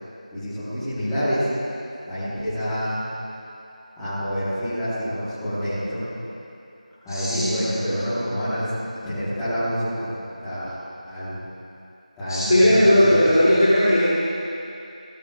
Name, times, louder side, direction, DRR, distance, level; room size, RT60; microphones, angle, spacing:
voice 1, 0.3-1.5 2.1-3.0 4.0-6.0 7.0-8.7 9.0-10.1 10.4-10.8 11.0-11.4 12.2-13.5, equal, ahead, -18 dB, 1.4 m, -27 dB
voice 2, 7.1-7.6 12.3-14.0, equal, 35° left, -12 dB, 2.9 m, -17 dB
18.0 x 16.5 x 2.4 m, 2.7 s
figure-of-eight pair, 180°, 4 cm